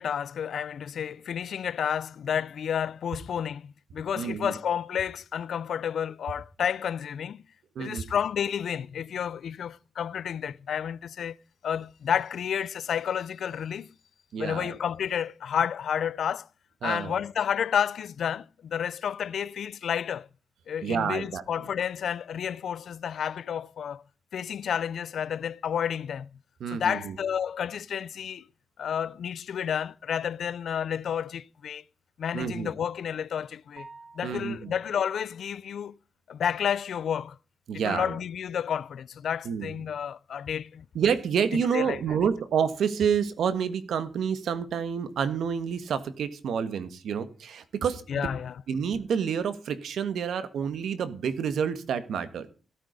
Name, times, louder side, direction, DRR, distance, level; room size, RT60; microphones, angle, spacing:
voice 1, 0.0-7.4 7.8-11.4 11.6-13.9 14.4-16.5 16.8-20.3 20.7-24.0 24.3-26.3 26.7-28.5 28.8-31.8 32.2-33.9 34.1-36.0 36.3-37.4 37.7-40.8 41.5-42.0 48.1-48.6, left 8 dB, 75° left, 0.5 m, -30 dB
voice 2, 4.1-4.5 7.7-8.1 14.3-14.7 16.8-17.2 20.8-21.4 26.6-27.1 32.3-32.7 34.2-34.7 37.7-38.2 39.4-39.7 40.9-48.3 48.7-52.5, right 7 dB, 85° right, 1.6 m, -28 dB
sound 1, 33.8-34.8, right 3 dB, 40° right, 2.3 m, -49 dB
15.5 x 8.7 x 5.2 m
wide cardioid pair, 115°, 0 cm